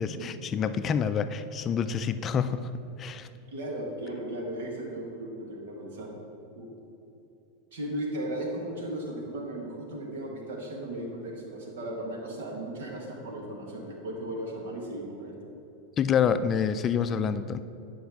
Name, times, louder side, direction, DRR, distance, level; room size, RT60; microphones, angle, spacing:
voice 1, 0.0-2.7 3.0-3.3 16.0-17.6, left 7 dB, 30° left, 12 dB, 0.3 m, -27 dB
voice 2, 3.5-6.2 6.6-6.7 7.7-15.3, right 1 dB, 75° right, 0 dB, 1.5 m, -36 dB
9.7 x 5.4 x 3.5 m, 2.8 s
hypercardioid pair, 105°, 0 cm